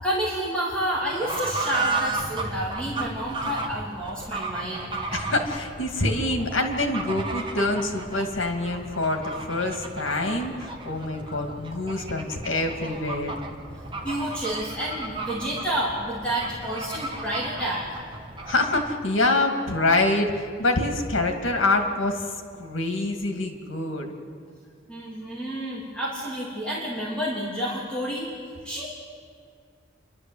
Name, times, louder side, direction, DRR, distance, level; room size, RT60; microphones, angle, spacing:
voice 1, 0.0-4.9 14.0-17.9 24.9-28.3 28.6-28.9, right 1 dB, 5° left, -6 dB, 3.0 m, -29 dB
Fowl / Bird, 0.9-19.0, right 3 dB, 25° right, 1.5 m, -34 dB
voice 2, 5.1-13.4 18.5-24.1, left 2 dB, 80° left, 5 dB, 2.5 m, -26 dB
28.5 x 12.0 x 8.1 m, 2.1 s
head